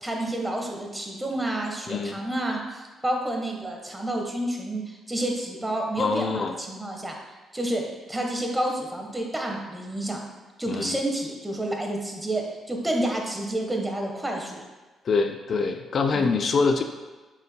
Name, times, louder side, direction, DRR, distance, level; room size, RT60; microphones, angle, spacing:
voice 1, 0.0-7.1 7.5-10.2 10.6-14.6 16.1-16.4, right 1 dB, 10° right, 1 dB, 1.2 m, -29 dB
voice 2, 1.9-2.2 6.0-6.5 10.7-11.0 15.0-16.8, left 4 dB, 50° left, 6 dB, 0.4 m, -25 dB
7.5 x 5.6 x 2.2 m, 1.2 s
cardioid pair, 90°, 0 cm